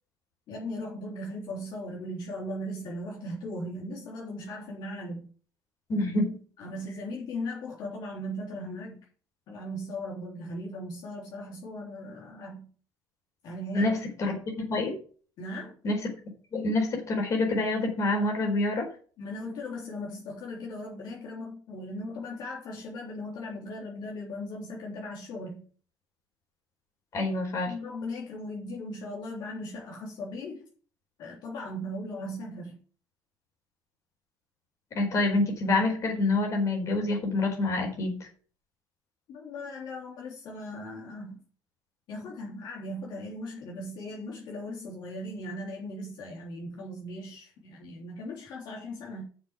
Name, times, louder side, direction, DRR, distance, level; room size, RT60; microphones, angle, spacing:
voice 1, 0.5-5.3 6.6-9.1 9.5-12.7 13.4-13.9 14.2-14.4 15.4-15.8 19.2-25.6 27.7-30.6 31.2-32.8 39.3-41.4 42.1-49.2, left 1 dB, 60° left, 3.5 m, -38 dB
voice 2, 5.9-6.4 13.7-15.0 15.8-16.1 16.5-18.9 27.1-27.7 34.9-38.3, left 2 dB, 40° left, 4.4 m, -27 dB
7.1 x 7.0 x 8.2 m
cardioid pair, 150°, 8 cm